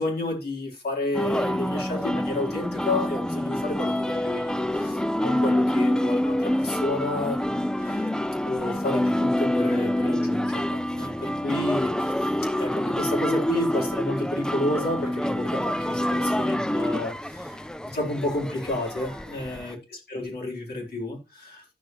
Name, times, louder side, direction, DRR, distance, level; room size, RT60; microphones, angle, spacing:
voice 1, 0.0-8.1 8.4-12.1 12.6-17.6 17.8-19.8 20.1-21.6, left 2 dB, 75° left, 4.1 m, -30 dB
sound 1, 1.1-19.7, left 1 dB, 5° left, 0.5 m, -27 dB
14.5 x 5.7 x 3.0 m
wide cardioid pair, 100°, 17 cm